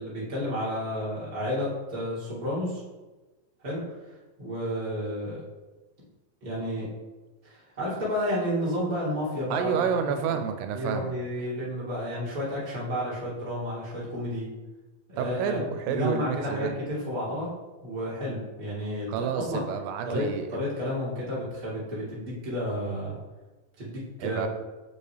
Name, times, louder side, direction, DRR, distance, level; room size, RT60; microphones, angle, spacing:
voice 1, 0.0-2.8 3.6-3.8 4.4-5.4 6.4-6.9 7.4-9.8 10.2-10.4 10.7-14.5 15.1-15.6 15.8-17.5 17.8-19.6 20.0-23.2 23.8-24.5, equal, 15° right, -8 dB, 1.5 m, -31 dB
voice 2, 9.5-11.1 15.2-16.8 19.1-20.6 24.2-24.5, right 7 dB, 85° right, 7 dB, 2.2 m, -29 dB
6.6 x 5.4 x 3.2 m, 1.2 s
omnidirectional pair, 4.0 m